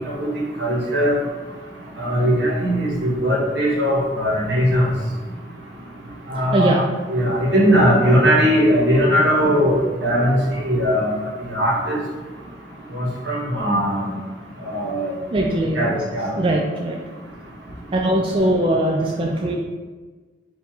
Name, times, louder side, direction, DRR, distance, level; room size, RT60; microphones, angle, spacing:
voice 1, 0.6-1.1 2.0-4.9 6.3-6.8 7.1-11.1 11.5-12.0 12.9-14.2 14.7-15.1 15.7-16.3, equal, 75° right, -4 dB, 1.2 m, -19 dB
voice 2, 6.5-6.9 15.3-16.0 16.4-17.0 17.9-19.5, right 1 dB, 30° right, 0 dB, 0.3 m, -20 dB
4.6 x 2.7 x 3.6 m, 1.3 s
head